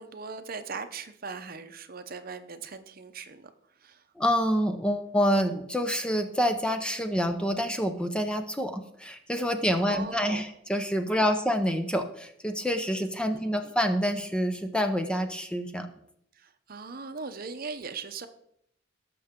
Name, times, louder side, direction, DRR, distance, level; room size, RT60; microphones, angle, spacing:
voice 1, 0.0-3.5 3.8-4.0 9.8-10.4 13.3-13.7 16.3-18.3, right 4 dB, 50° right, 9 dB, 0.8 m, -39 dB
voice 2, 4.2-15.9, equal, 5° left, 6 dB, 0.7 m, -27 dB
18.0 x 6.7 x 3.7 m, 0.73 s
head